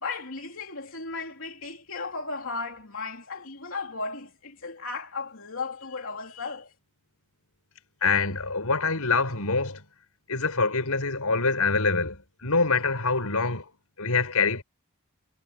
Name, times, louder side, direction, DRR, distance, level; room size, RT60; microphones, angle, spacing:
voice 1, 0.0-6.7, left 3 dB, 65° left, 3.1 m, -35 dB
voice 2, 8.0-9.8 10.3-13.7 14.0-14.6, left 4 dB, 90° left, 6.2 m, -25 dB
head